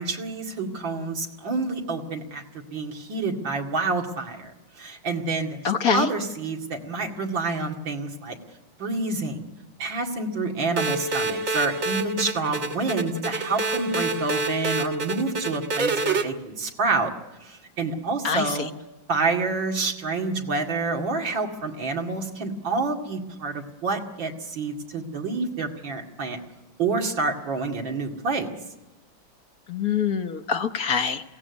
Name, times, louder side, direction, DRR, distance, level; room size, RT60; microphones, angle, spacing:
voice 1, 0.0-2.4 2.7-4.5 4.8-5.6 5.9-8.4 8.8-9.4 9.8-17.1 17.4-18.7 19.1-26.4 26.8-28.5, right 3 dB, 80° right, 1 dB, 3.0 m, -28 dB
voice 2, 5.6-6.1 18.2-18.5 29.7-31.2, left 6 dB, 55° left, 7 dB, 1.3 m, -24 dB
sound 1, 10.8-16.2, right 2 dB, 45° right, 1.9 m, -27 dB
22.5 x 17.0 x 9.6 m, 1.1 s
omnidirectional pair, 2.0 m